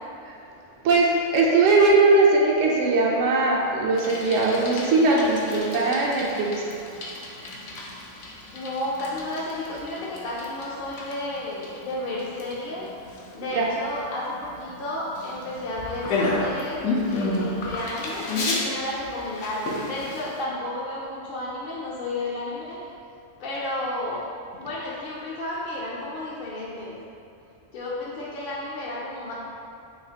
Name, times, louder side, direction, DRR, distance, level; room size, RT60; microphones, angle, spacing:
voice 1, 0.8-6.6 13.5-13.7, right 3 dB, 85° right, -3 dB, 0.9 m, -20 dB
Bicycle, 3.9-20.4, left 2 dB, 80° left, 1.0 m, -32 dB
voice 2, 8.3-12.9 13.3-16.8 17.1-22.8 23.4-24.2 24.6-27.0 27.7-29.3, left 1 dB, 55° left, -6 dB, 0.6 m, -32 dB
4.8 x 3.2 x 2.8 m, 2.5 s
omnidirectional pair, 1.3 m